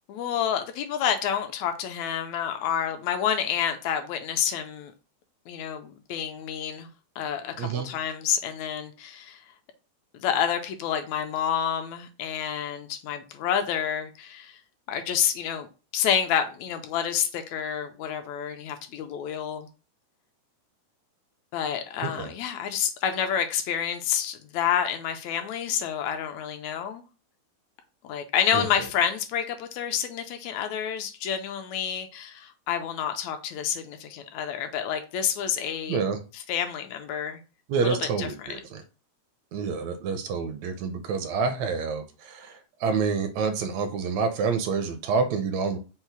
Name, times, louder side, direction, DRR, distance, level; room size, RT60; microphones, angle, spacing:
voice 1, 0.1-4.9 5.5-6.9 7.2-9.4 10.1-14.6 14.9-15.7 15.9-19.7 21.5-27.0 28.0-36.0 36.3-37.4 37.7-38.6, left 8 dB, 80° left, 1.8 m, -29 dB
voice 2, 7.6-7.9 22.0-22.3 28.5-28.7 35.9-36.2 37.7-38.8 39.5-45.8, right 5 dB, 80° right, 1.8 m, -28 dB
5.5 x 2.0 x 4.5 m
omnidirectional pair, 3.3 m